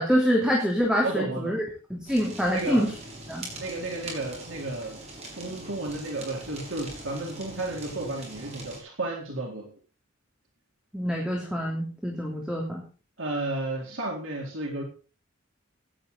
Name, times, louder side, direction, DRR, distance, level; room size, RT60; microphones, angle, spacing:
voice 1, 0.0-1.6 1.9-2.9 3.3-3.5 10.9-12.8, equal, 5° right, -1 dB, 3.1 m, -25 dB
voice 2, 1.0-1.6 2.5-2.9 3.6-5.0 5.3-9.7 13.2-14.8, right 2 dB, 70° right, 0 dB, 4.0 m, -32 dB
Fire, 2.1-8.8, right 1 dB, 35° right, 6.5 m, -42 dB
16.5 x 11.0 x 4.1 m, 0.36 s
head